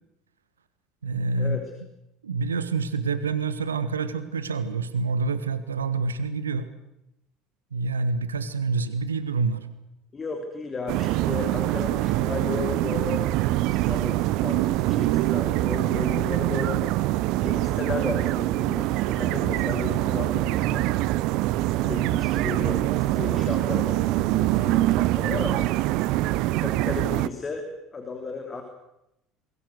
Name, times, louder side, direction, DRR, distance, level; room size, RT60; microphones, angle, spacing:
voice 1, 1.0-1.6 2.2-6.7 7.7-9.7, right 4 dB, 75° right, 13 dB, 1.4 m, -27 dB
voice 2, 10.1-16.8 17.4-20.9 21.5-25.7 26.4-28.6, left 4 dB, 25° left, 5 dB, 3.3 m, -34 dB
sound 1, 10.9-27.3, right 17 dB, 55° right, 0.8 m, -24 dB
27.0 x 22.0 x 6.6 m, 0.86 s
figure-of-eight pair, 65°, 0 cm